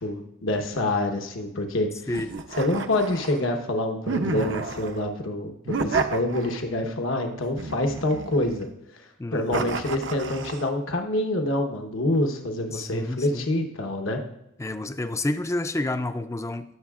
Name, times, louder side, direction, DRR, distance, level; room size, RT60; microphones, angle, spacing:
voice 1, 0.0-1.9 2.6-8.7 8.9-9.0 9.3-14.2, left 1 dB, 85° left, 4 dB, 1.1 m, -26 dB
sound 1, 2.1-3.5 4.1-5.0 5.7-6.8 7.6-8.7 9.5-10.7, right 4 dB, 65° right, 0.7 m, -30 dB
voice 2, 9.2-9.8 12.7-13.5 14.6-16.8, left 2 dB, 15° left, 11 dB, 0.4 m, -30 dB
17.5 x 7.2 x 2.5 m, 0.85 s
head